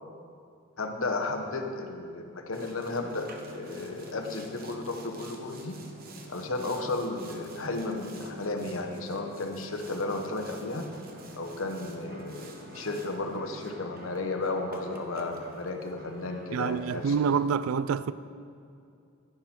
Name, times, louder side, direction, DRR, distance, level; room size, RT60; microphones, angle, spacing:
voice 1, 0.8-5.8 6.3-10.9 11.3-17.1, left 2 dB, 70° left, 1.0 m, -34 dB
Boat Water vehicle, 2.5-17.4, right 1 dB, 45° right, 0.9 m, -46 dB
voice 2, 16.5-18.1, right 6 dB, 75° right, 0.3 m, -27 dB
11.5 x 9.8 x 4.4 m
head